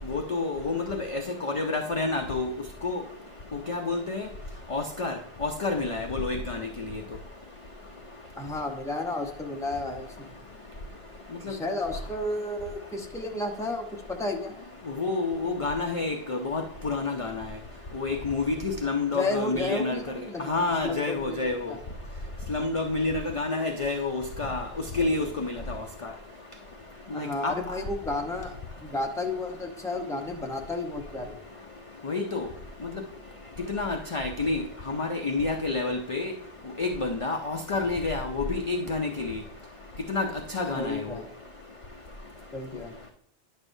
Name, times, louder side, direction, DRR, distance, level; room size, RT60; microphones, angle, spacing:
voice 1, 0.1-2.5 2.8-3.0 3.7-4.3 4.7-5.1 5.4-7.0 14.9-17.5 17.9-20.0 20.4-21.7 22.5-24.7 24.9-26.1 27.1-27.5 32.0-32.5 33.7-34.6 34.9-36.3 36.8-39.4 40.1-40.3 40.5-41.2, left 3 dB, 40° left, 3 dB, 0.5 m, -29 dB
voice 2, 8.4-10.3 11.4-14.5 19.1-20.5 20.8-21.4 21.7-21.8 27.1-28.5 28.8-31.4 40.7-41.2 42.5-43.0, left 2 dB, 5° left, 2 dB, 0.7 m, -32 dB
9.7 x 6.4 x 2.6 m, 0.64 s
omnidirectional pair, 1.1 m